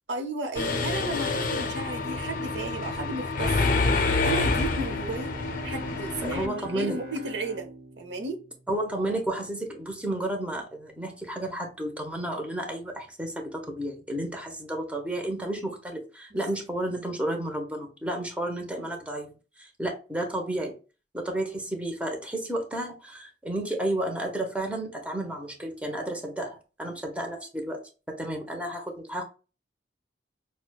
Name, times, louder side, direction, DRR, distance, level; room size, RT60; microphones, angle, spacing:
voice 1, 0.1-5.3 5.6-7.7 8.0-8.4 16.3-16.4, right 2 dB, 80° right, 0.8 m, -34 dB
Mechanisms, 0.6-6.5, left 3 dB, 50° left, 0.5 m, -27 dB
Bowed string instrument, 4.3-9.5, right 1 dB, 55° right, 1.0 m, -43 dB
voice 2, 6.2-7.0 8.7-19.3 19.6-20.7 21.1-27.8 28.1-29.2, right 1 dB, 10° right, 0.7 m, -32 dB
5.9 x 2.1 x 2.2 m
head